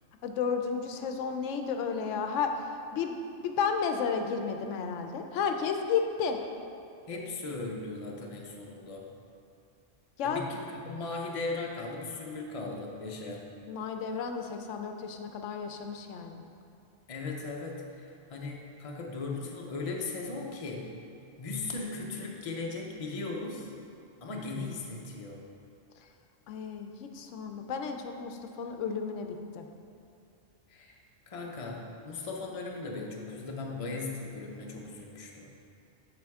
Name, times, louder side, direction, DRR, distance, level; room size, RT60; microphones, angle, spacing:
voice 1, 0.2-2.6 2.9-3.2 3.4-6.4 10.2-10.4 13.7-16.4 26.5-29.7, left 6 dB, 90° left, 5 dB, 0.9 m, -32 dB
voice 2, 7.1-9.1 10.2-13.5 17.1-21.0 21.4-23.7 24.2-25.4 30.7-31.0 31.3-35.5, left 3 dB, 35° left, 0 dB, 0.7 m, -38 dB
7.6 x 5.4 x 3.5 m, 2.6 s
omnidirectional pair, 1.2 m